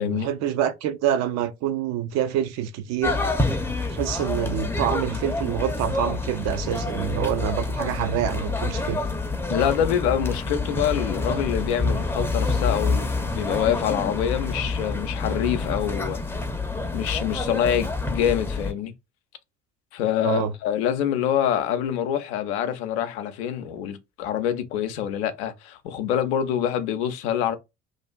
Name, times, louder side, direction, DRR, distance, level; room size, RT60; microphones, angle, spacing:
voice 1, 0.0-3.2 3.9-9.0 20.2-20.5, right 10 dB, 50° right, 0.5 m, -26 dB
sound 1, 3.0-18.7, left 3 dB, 5° left, 0.6 m, -27 dB
voice 2, 9.5-16.2 16.9-18.9 19.9-27.5, left 9 dB, 70° left, 0.5 m, -26 dB
2.5 x 2.4 x 2.2 m
figure-of-eight pair, 50°, 34 cm